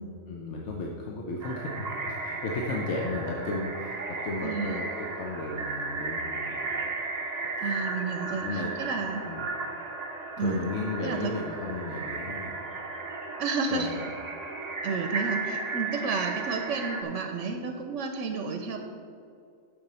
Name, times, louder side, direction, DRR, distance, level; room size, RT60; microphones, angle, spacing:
voice 1, 0.3-6.9 7.6-7.8 8.2-8.7 9.3-9.5 10.4-12.7 13.7-14.1, left 2 dB, 70° left, -1 dB, 1.1 m, -34 dB
sound 1, 1.4-17.0, right 3 dB, 35° right, 0.9 m, -35 dB
voice 2, 4.4-4.8 7.6-9.3 10.4-10.6 11.0-11.3 13.4-13.9 14.8-18.8, right 4 dB, 85° right, 5 dB, 1.0 m, -31 dB
7.0 x 6.8 x 5.5 m, 2.5 s
omnidirectional pair, 1.2 m